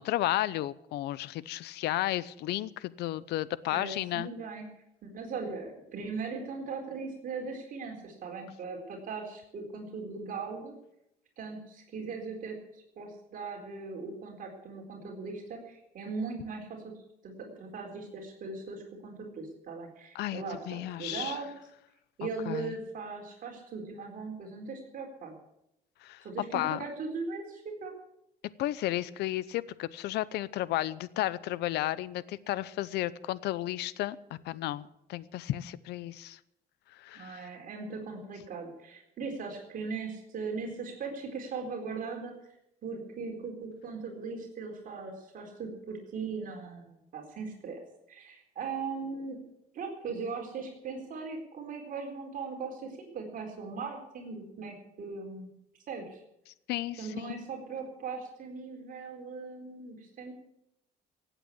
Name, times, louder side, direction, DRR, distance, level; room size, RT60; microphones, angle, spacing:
voice 1, 0.0-4.3 20.1-21.4 22.5-22.7 26.0-26.2 26.5-26.8 28.6-34.2 34.4-36.4 36.9-37.5 56.7-57.1, left 15 dB, 80° left, 19 dB, 0.7 m, -33 dB
voice 2, 3.7-4.6 5.0-10.7 11.4-16.9 17.2-21.5 22.2-25.3 26.2-27.9 37.1-42.4 42.8-47.8 48.1-49.4 49.7-55.5 55.9-56.2 57.0-60.3, right 4 dB, 55° right, 2 dB, 4.1 m, -39 dB
16.5 x 9.2 x 8.4 m, 0.82 s
cardioid pair, 110°, 17 cm